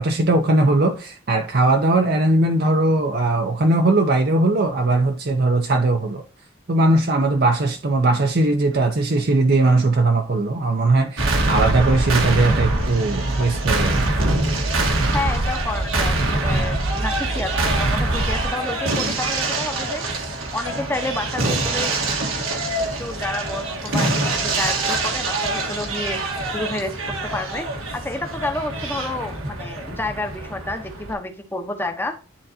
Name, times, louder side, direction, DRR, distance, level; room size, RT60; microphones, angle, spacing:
voice 1, 0.0-6.2 6.7-14.1, right 2 dB, 50° right, 0.6 m, -19 dB
sound 1, 11.2-31.1, right 2 dB, 85° right, 1.5 m, -24 dB
voice 2, 15.1-20.0 20.5-21.9 23.0-26.2 26.5-32.1, left 2 dB, 10° left, 0.8 m, -30 dB
10.0 x 3.9 x 2.7 m
head